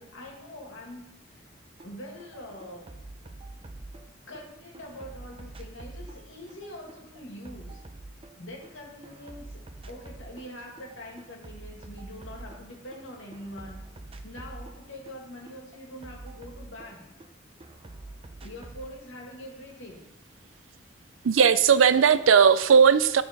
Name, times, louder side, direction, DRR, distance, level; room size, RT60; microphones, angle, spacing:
voice 1, 0.0-1.5 1.8-2.9 4.3-7.8 8.4-13.8 14.2-17.1 18.4-20.1 22.0-22.2, left 1 dB, 75° left, 0 dB, 2.3 m, -44 dB
sound 1, 1.8-1.9 2.2-4.4 4.7-8.7 9.0-10.5 10.8-13.0 13.3-17.3 17.6-18.9, right 2 dB, 30° right, 0.6 m, -45 dB
voice 2, 21.2-23.2, right 6 dB, 90° right, 14 dB, 0.5 m, -18 dB
12.5 x 4.3 x 5.2 m, 0.89 s
head